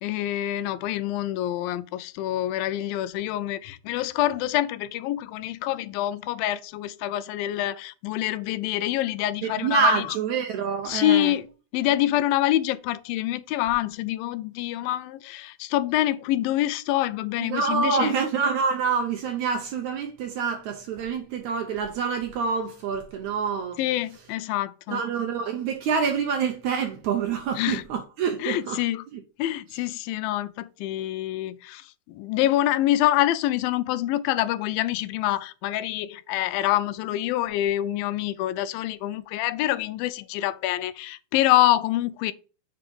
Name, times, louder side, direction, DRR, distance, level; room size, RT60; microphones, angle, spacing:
voice 1, 0.0-10.1 10.9-11.5 11.7-18.1 23.8-25.0 27.6-27.8 28.4-29.0 29.4-42.3, left 14 dB, 80° left, 2.2 m, -26 dB
voice 2, 9.4-11.3 17.4-23.8 24.9-28.8 29.1-29.2 29.7-29.8, right 5 dB, 90° right, 1.6 m, -26 dB
7.8 x 3.7 x 5.4 m
omnidirectional pair, 4.3 m